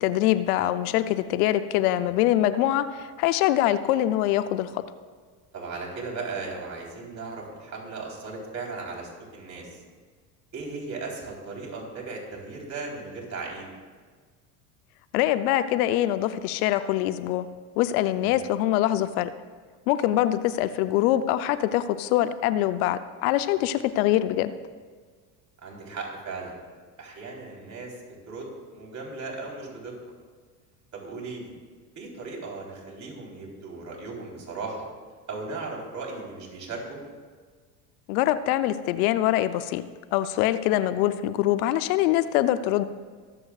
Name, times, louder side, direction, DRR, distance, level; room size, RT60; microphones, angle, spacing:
voice 1, 0.0-4.8 15.1-17.5 17.8-19.3 19.9-24.5 38.1-39.8 40.1-42.9, left 13 dB, 70° left, 12 dB, 0.6 m, -24 dB
voice 2, 5.5-9.8 10.5-13.7 18.2-18.3 25.6-26.6 27.0-28.0 28.3-30.0 30.9-31.5 32.0-34.9 35.3-37.0, right 3 dB, 40° right, -2 dB, 3.7 m, -37 dB
23.0 x 7.8 x 2.4 m, 1.6 s
hypercardioid pair, 80°, 45 cm